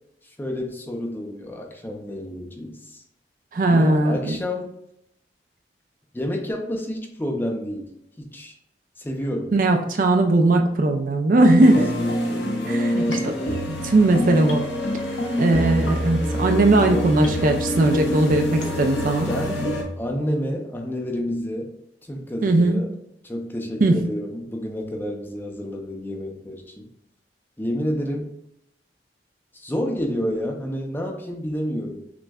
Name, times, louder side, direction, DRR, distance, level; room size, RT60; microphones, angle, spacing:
voice 1, 0.2-3.0 3.7-4.7 6.1-7.9 8.2-8.6 9.0-9.5 11.7-13.6 16.9-17.1 19.3-19.7 20.0-21.7 22.0-22.9 23.2-26.9 27.6-28.3 29.5-32.0, equal, 10° left, 1 dB, 0.4 m, -29 dB
voice 2, 3.5-4.4 9.5-11.9 12.7-13.3 13.7-14.6 15.4-19.3 22.4-22.8 23.8-24.1, right 2 dB, 50° right, 5 dB, 0.4 m, -19 dB
sound 1, 11.6-19.8, equal, 80° left, 0.8 m, -26 dB
6.0 x 2.1 x 2.3 m, 0.77 s
head